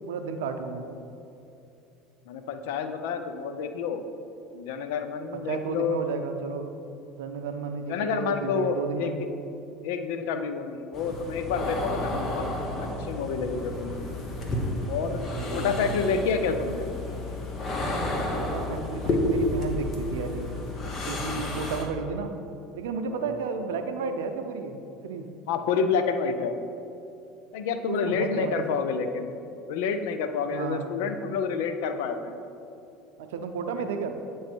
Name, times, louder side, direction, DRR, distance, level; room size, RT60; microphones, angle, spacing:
voice 1, 0.1-0.9 5.3-6.7 7.2-9.2 12.0-12.2 15.1-16.0 17.9-20.5 21.1-22.3 22.7-24.7 25.0-25.3 27.9-28.8 30.5-31.0 33.2-34.1, right 5 dB, 85° right, 6 dB, 0.5 m, -33 dB
voice 2, 2.3-4.0 4.5-6.0 7.9-9.1 9.8-12.4 13.0-14.0 14.9-15.2 15.5-16.9 23.1-23.4 25.5-26.6 27.5-29.3 29.7-32.4, left 5 dB, 80° left, 8 dB, 0.4 m, -29 dB
sound 1, 10.9-21.9, left 1 dB, 40° left, 1.1 m, -31 dB
8.7 x 3.1 x 4.4 m, 2.7 s
supercardioid pair, 90°, 0 cm